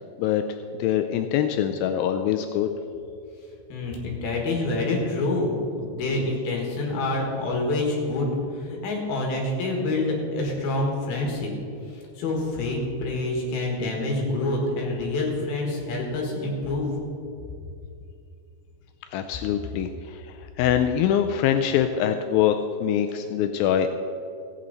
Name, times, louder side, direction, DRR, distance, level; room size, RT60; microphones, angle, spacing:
voice 1, 0.8-2.7 19.1-23.9, left 10 dB, 90° left, 7 dB, 2.0 m, -24 dB
voice 2, 3.7-11.5 12.2-16.9, left 2 dB, 70° left, 0 dB, 3.5 m, -27 dB
16.0 x 8.9 x 4.0 m, 2.6 s
omnidirectional pair, 4.6 m